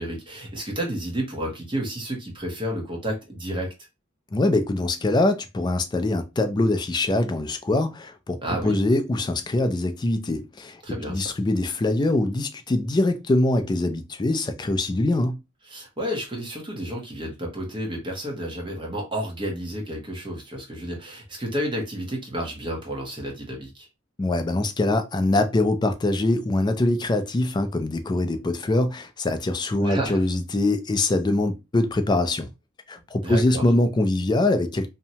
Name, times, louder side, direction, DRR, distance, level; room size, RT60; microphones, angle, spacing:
voice 1, 0.0-3.7 8.4-8.8 10.8-11.2 15.7-23.9 29.8-30.2 33.2-33.7, equal, 25° right, 0.9 m, -31 dB
voice 2, 4.3-10.8 11.1-15.4 24.2-32.5 32.9-34.9, left 2 dB, 20° left, 0.3 m, -23 dB
2.7 x 2.2 x 2.7 m
head